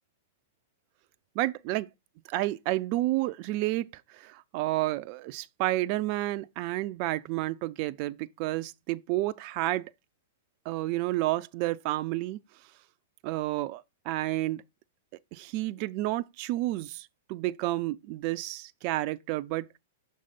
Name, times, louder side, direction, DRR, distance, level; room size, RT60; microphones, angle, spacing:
voice 1, 1.4-1.8 2.3-3.9 4.1-9.9 10.7-12.4 13.2-14.6 15.3-19.8, right 17 dB, 45° right, 0.4 m, -30 dB
6.5 x 3.1 x 5.7 m
hypercardioid pair, 110°, 0 cm